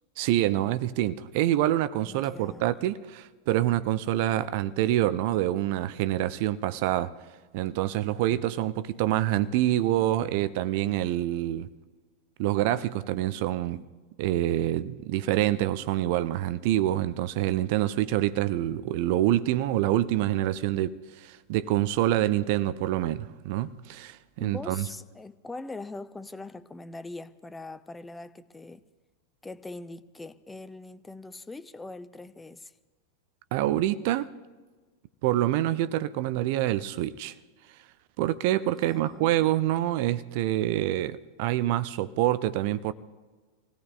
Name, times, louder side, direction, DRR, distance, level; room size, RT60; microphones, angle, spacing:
voice 1, 0.2-7.1 7.5-11.7 12.4-13.8 14.2-24.8 33.5-34.3 35.2-37.3 38.2-42.9, right 13 dB, 50° right, 0.5 m, -26 dB
voice 2, 2.0-2.7 24.4-28.8 29.4-32.7 38.7-39.3, left 2 dB, 10° left, 0.5 m, -42 dB
26.0 x 17.5 x 2.5 m
figure-of-eight pair, 90°, 0 cm